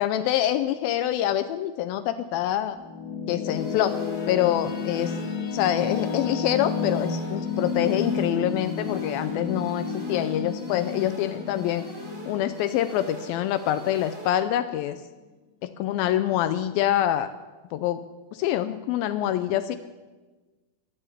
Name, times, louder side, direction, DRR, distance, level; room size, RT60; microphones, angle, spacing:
voice 1, 0.0-2.8 3.3-4.0 4.3-5.1 5.5-11.9 12.3-15.0 15.6-17.3 17.7-18.0 18.3-19.8, left 12 dB, 85° left, 10 dB, 2.1 m, -25 dB
sound 1, 2.4-13.8, left 5 dB, 65° left, 2.7 m, -31 dB
sound 2, 3.5-14.5, right 2 dB, 65° right, 7.4 m, -44 dB
12.0 x 11.5 x 8.3 m, 1.3 s
omnidirectional pair, 4.7 m